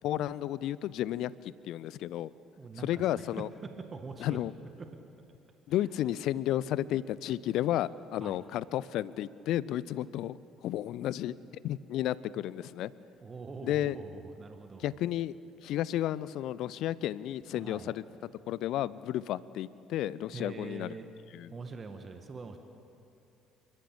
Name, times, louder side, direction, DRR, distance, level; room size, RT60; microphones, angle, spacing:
voice 1, 0.0-2.3 2.8-3.5 4.2-4.5 5.7-11.3 11.6-12.9 13.6-13.9 14.8-15.3 15.6-18.0 18.5-20.9 21.3-21.5, left 13 dB, 55° left, 20 dB, 0.5 m, -32 dB
voice 2, 2.6-3.3 3.9-4.4 8.2-8.4 13.2-15.0 17.5-17.9 20.3-21.1 21.5-22.6, right 4 dB, 30° right, 6 dB, 1.7 m, -44 dB
28.5 x 14.5 x 8.8 m, 2.8 s
figure-of-eight pair, 50°, 0 cm